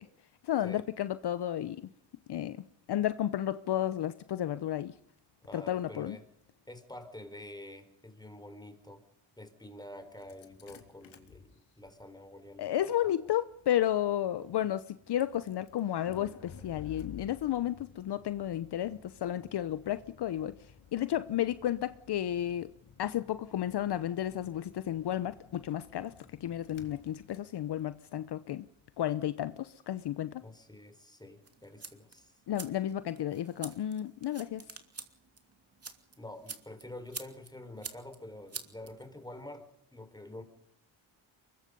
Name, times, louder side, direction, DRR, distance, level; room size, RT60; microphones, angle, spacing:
voice 1, 0.4-1.9 2.3-2.6 2.9-4.9 5.5-6.2 12.6-22.7 23.0-26.1 26.4-28.7 29.0-30.4 32.5-34.7, left 11 dB, 55° left, 0.9 m, -32 dB
voice 2, 5.4-6.2 6.7-9.0 9.4-13.1 30.4-32.3 36.2-40.4, left 1 dB, 10° left, 4.6 m, -48 dB
Engine starting, 10.1-29.0, left 7 dB, 70° left, 3.5 m, -55 dB
sound 1, 31.4-39.4, right 4 dB, 30° right, 2.8 m, -48 dB
24.0 x 22.0 x 5.4 m
cardioid pair, 75°, 47 cm